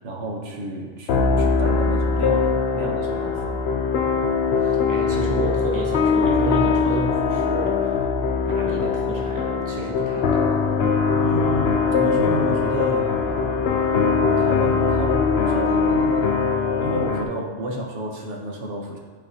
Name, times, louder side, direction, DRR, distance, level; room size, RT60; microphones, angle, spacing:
voice 1, 0.0-3.6 11.2-13.1 14.0-16.4 16.8-19.0, right 1 dB, 80° right, 0 dB, 1.2 m, -31 dB
sound 1, 1.1-17.3, left 5 dB, 65° left, 0.8 m, -21 dB
voice 2, 4.6-7.9 8.5-10.5, right 2 dB, 20° right, -2 dB, 0.9 m, -31 dB
11.5 x 4.3 x 2.7 m, 1.5 s
omnidirectional pair, 1.2 m